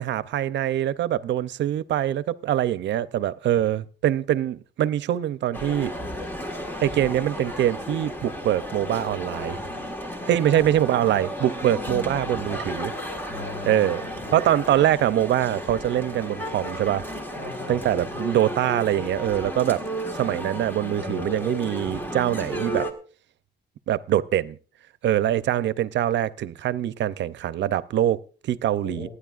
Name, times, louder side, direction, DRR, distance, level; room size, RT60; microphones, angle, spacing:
voice 1, 0.0-5.9 6.8-9.6 10.3-12.9 13.7-14.0 14.3-17.1 17.7-19.8 20.1-22.9 23.9-24.6 25.0-29.1, right 12 dB, 85° right, 0.6 m, -24 dB
Male speech man speaking, 5.5-22.9, equal, 10° left, 1.6 m, -33 dB
voice 2, 13.3-14.4 17.4-18.3 28.8-29.1, left 3 dB, 65° left, 7.3 m, -39 dB
28.5 x 9.8 x 2.5 m
wide cardioid pair, 150°, 18 cm